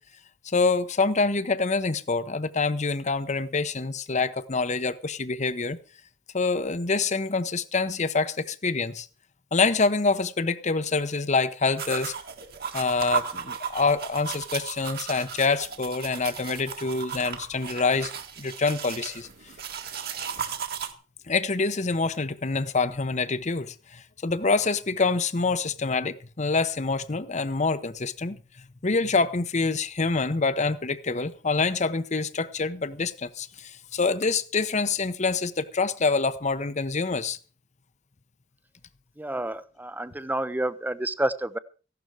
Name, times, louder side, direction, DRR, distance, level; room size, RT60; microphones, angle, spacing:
voice 1, 0.4-5.8 6.3-9.1 9.5-12.1 12.7-18.1 18.4-19.3 21.3-28.4 28.8-37.4, left 4 dB, 35° left, 0.8 m, -26 dB
sound 1, 11.8-20.9, right 7 dB, 55° right, 1.7 m, -35 dB
voice 2, 39.2-41.6, right 1 dB, 10° right, 0.6 m, -29 dB
15.5 x 12.0 x 4.7 m
head